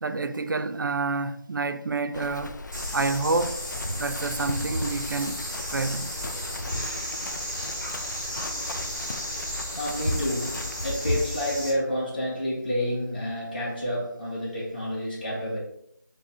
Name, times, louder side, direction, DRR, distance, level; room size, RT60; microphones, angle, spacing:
voice 1, 0.0-2.6 2.9-3.6 4.0-5.4 5.7-6.1, right 3 dB, 80° right, 0.4 m, -28 dB
Livestock farm animals working animals, 2.1-11.3, left 2 dB, 65° left, 0.4 m, -39 dB
sound 1, 2.7-11.7, equal, 10° left, 1.3 m, -32 dB
voice 2, 9.7-15.6, equal, 30° left, 1.2 m, -29 dB
5.2 x 2.1 x 3.0 m
figure-of-eight pair, 175°, 11 cm